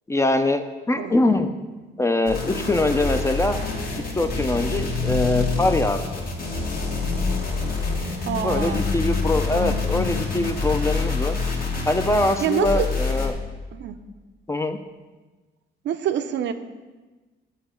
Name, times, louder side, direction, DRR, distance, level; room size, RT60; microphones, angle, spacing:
voice 1, 0.1-1.5 2.0-3.6 4.1-6.2 8.4-11.4 11.9-13.4 14.5-14.8, left 2 dB, 15° left, 8 dB, 0.4 m, -23 dB
sound 1, 2.3-13.3, left 4 dB, 50° left, 1.3 m, -27 dB
sound 2, 3.5-10.5, left 4 dB, 80° left, 1.3 m, -30 dB
voice 2, 8.3-8.8 12.4-12.9 13.7-14.0 15.8-16.5, right 9 dB, 65° right, 10 dB, 0.5 m, -26 dB
8.3 x 2.8 x 5.6 m, 1.2 s
cardioid pair, 90°, 20 cm